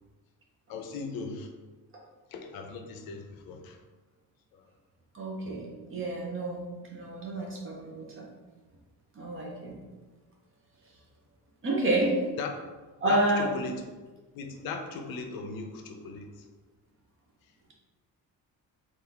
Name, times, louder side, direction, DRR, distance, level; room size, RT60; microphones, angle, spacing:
voice 1, 0.7-1.5 2.3-3.8 4.5-4.6 12.4-12.5 13.1-13.8 14.3-16.4, left 4 dB, 70° left, 4 dB, 0.6 m, -38 dB
voice 2, 5.1-6.6 6.9-8.3 9.1-9.8 11.6-12.2 13.0-13.5, right 1 dB, 35° right, -2 dB, 0.9 m, -29 dB
4.2 x 2.6 x 3.7 m, 1.3 s
cardioid pair, 175°, 36 cm